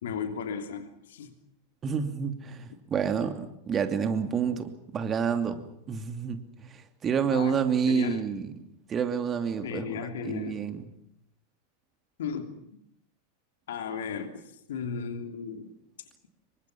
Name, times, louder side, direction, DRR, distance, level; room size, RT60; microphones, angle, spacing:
voice 1, 0.0-1.3 7.3-7.6 7.9-8.4 9.6-10.7 12.2-12.6 13.7-14.4 14.7-15.7, left 6 dB, 60° left, 3.1 m, -35 dB
voice 2, 1.8-8.5 8.9-10.9, right 6 dB, 25° right, 2.7 m, -29 dB
28.0 x 23.5 x 5.9 m
figure-of-eight pair, 90°, 0 cm